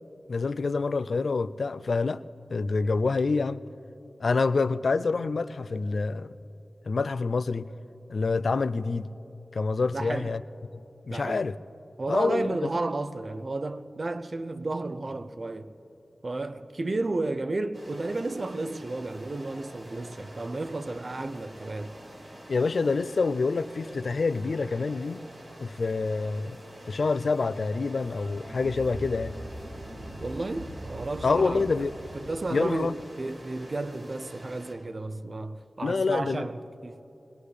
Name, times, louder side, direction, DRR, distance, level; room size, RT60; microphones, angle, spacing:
voice 1, 0.3-2.2 2.5-3.6 4.2-6.3 6.9-7.7 8.1-9.1 9.5-10.4 11.1-11.5 12.1-12.7 22.5-25.2 25.6-26.6 26.9-29.3 31.2-31.9 32.5-33.0 35.8-36.5, left 4 dB, 70° left, 0.4 m, -27 dB
voice 2, 9.9-10.3 11.1-11.4 12.0-15.7 16.2-21.9 30.2-31.7 32.1-37.0, right 2 dB, 45° right, 0.6 m, -32 dB
sound 1, 17.7-34.7, right 1 dB, 25° right, 3.5 m, -47 dB
sound 2, 28.0-32.8, right 1 dB, 70° right, 2.8 m, -42 dB
23.0 x 19.0 x 3.3 m
wide cardioid pair, 95°, 0 cm